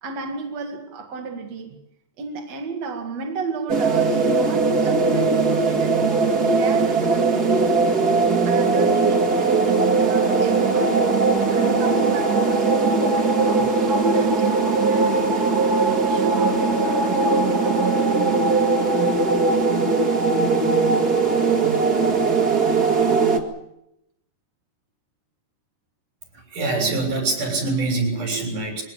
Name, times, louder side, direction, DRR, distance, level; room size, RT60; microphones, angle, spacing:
voice 1, 0.0-1.8 2.2-7.9 8.4-11.2 11.5-15.6 16.1-18.7, right 4 dB, 60° right, 3.1 m, -33 dB
sound 1, 3.7-23.4, right 4 dB, 30° right, 2.4 m, -19 dB
voice 2, 26.5-28.8, right 3 dB, 80° right, 8.3 m, -24 dB
23.5 x 18.0 x 8.6 m
omnidirectional pair, 3.6 m